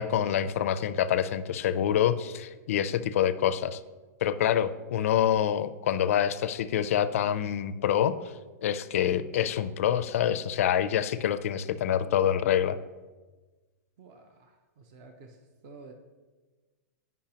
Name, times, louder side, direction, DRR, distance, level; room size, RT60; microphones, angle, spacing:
voice 1, 0.0-3.8 4.2-8.1 8.6-12.8, left 10 dB, 55° left, 13 dB, 0.4 m, -26 dB
voice 2, 14.0-15.9, right 3 dB, 30° right, 5 dB, 0.5 m, -51 dB
10.0 x 5.4 x 2.8 m, 1.3 s
supercardioid pair, 175°, 9 cm